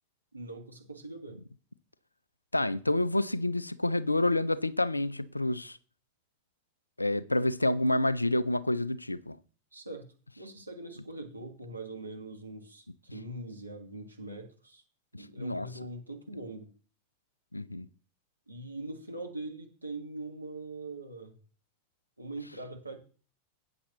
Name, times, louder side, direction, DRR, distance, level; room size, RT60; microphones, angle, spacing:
voice 1, 0.3-1.4 9.7-10.1 10.4-14.8 15.1-16.7 18.5-21.3 22.2-23.0, right 2 dB, 85° right, 1.8 m, -42 dB
voice 2, 2.5-5.8 7.0-9.4 15.4-15.7 17.5-17.9, left 1 dB, 85° left, 0.5 m, -28 dB
13.0 x 9.0 x 3.1 m
figure-of-eight pair, 90°, 0 cm